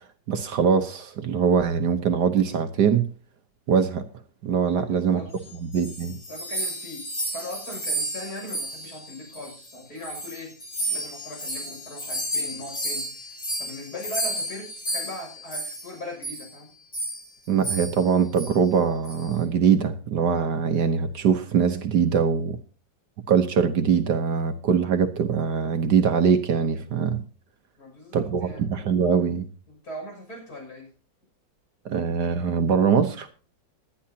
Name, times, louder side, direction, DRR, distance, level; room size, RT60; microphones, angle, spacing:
voice 1, 0.3-3.1 3.7-4.0 4.4-5.2 5.6-6.1 17.5-22.6 23.3-27.2 28.1-29.5 31.8-33.3, right 7 dB, 65° right, 9 dB, 1.4 m, -22 dB
voice 2, 4.7-5.6 6.3-7.1 7.3-10.6 10.8-16.7 27.8-28.6 29.7-30.9, left 1 dB, 55° left, 1 dB, 6.8 m, -39 dB
sound 1, 5.5-9.7 10.0-15.9 16.2-16.5 16.9-17.3 17.6-18.1 18.3-18.5 19.1-19.3, right 1 dB, 90° left, 7.8 m, -32 dB
19.0 x 11.5 x 2.8 m, 0.36 s
omnidirectional pair, 2.1 m